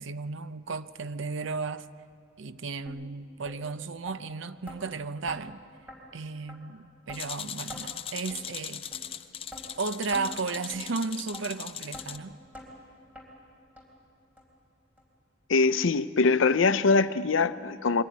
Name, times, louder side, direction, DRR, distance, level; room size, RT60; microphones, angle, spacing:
voice 1, 0.0-1.9 2.4-5.6 6.1-8.8 9.8-12.4, right 4 dB, 70° right, 0.6 m, -34 dB
sound 1, 2.9-3.0 3.5-3.6 4.1-4.2 4.7-4.8 5.3-5.4 5.9-6.0 6.5-6.6 7.1-7.2 7.7-7.8 8.3-8.4 8.9-9.0 9.5-9.6 10.1-10.3 10.7-10.9 11.3-11.4 11.9-12.1 12.5-12.7 13.2-13.3 13.8-13.9 14.4-14.5 15.0-15.1 15.6-15.7, equal, 10° right, 3.6 m, -44 dB
sound 2, 7.1-12.2, left 9 dB, 30° left, 0.5 m, -39 dB
voice 2, 15.5-18.0, left 4 dB, 75° left, 0.6 m, -23 dB
23.0 x 14.5 x 9.4 m
head